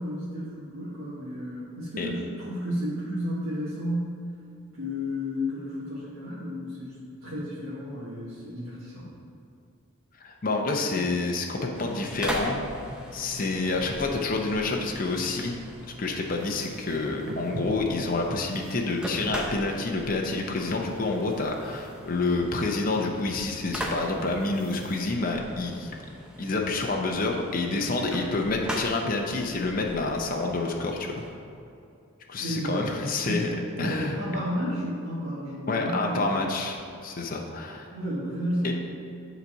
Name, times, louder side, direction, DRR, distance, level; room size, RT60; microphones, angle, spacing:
voice 1, 0.0-4.2 4.7-9.0 32.4-32.8 33.2-33.5 33.8-36.4 37.9-38.7, equal, 80° right, -10 dB, 1.5 m, -32 dB
voice 2, 10.2-12.7 13.1-15.6 16.0-25.9 26.4-31.2 32.3-33.5 33.8-34.2 35.7-38.0 38.6-38.7, left 3 dB, 40° left, 1 dB, 0.6 m, -28 dB
sound 1, 11.7-31.3, equal, 5° right, 0.6 m, -40 dB
sound 2, 16.4-25.2, right 3 dB, 45° right, 0.4 m, -45 dB
7.3 x 4.0 x 5.6 m, 2.5 s
head